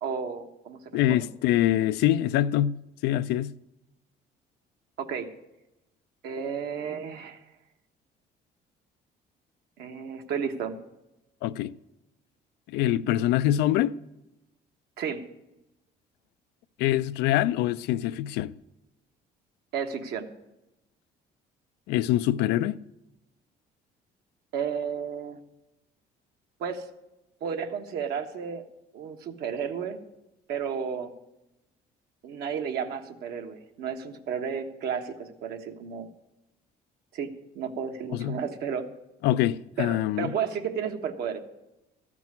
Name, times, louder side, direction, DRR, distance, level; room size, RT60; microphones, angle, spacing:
voice 1, 0.0-0.8 1.1-1.3 5.0-5.3 6.2-7.4 9.8-10.8 13.1-13.2 15.0-15.2 19.7-20.3 24.5-25.4 26.6-26.9 27.4-28.6 28.9-30.0 30.5-31.1 32.2-36.1 37.1-38.8 39.8-41.4, right 7 dB, 75° right, 1.3 m, -32 dB
voice 2, 0.9-2.8 3.0-3.5 11.4-11.7 12.7-14.0 16.8-18.5 21.9-22.8 38.1-38.4 39.2-40.3, left 13 dB, 90° left, 0.4 m, -24 dB
13.5 x 6.1 x 9.5 m
cardioid pair, 110°, 17 cm